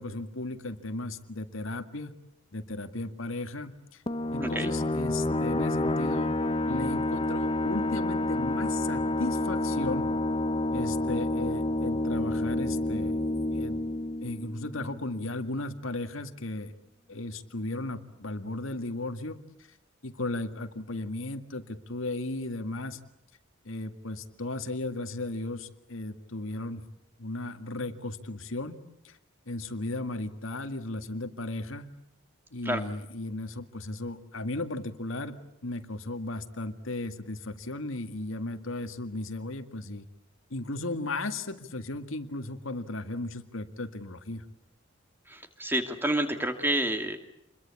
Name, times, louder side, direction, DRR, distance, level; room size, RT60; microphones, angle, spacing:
voice 1, 0.0-2.2 2.5-4.0 4.3-6.3 6.7-10.1 10.7-13.2 13.5-13.8 14.2-16.7 17.1-19.8 20.0-23.0 23.7-26.8 27.2-28.8 29.0-29.2 29.5-31.9 32.5-40.0 40.5-44.4, left 2 dB, 75° left, 8 dB, 1.9 m, -35 dB
sound 1, 4.1-15.3, left 1 dB, 25° left, 0.9 m, -29 dB
voice 2, 4.4-4.7 32.7-32.8 45.3-47.2, right 1 dB, 10° right, 6 dB, 2.4 m, -29 dB
28.0 x 22.5 x 8.4 m, 0.83 s
head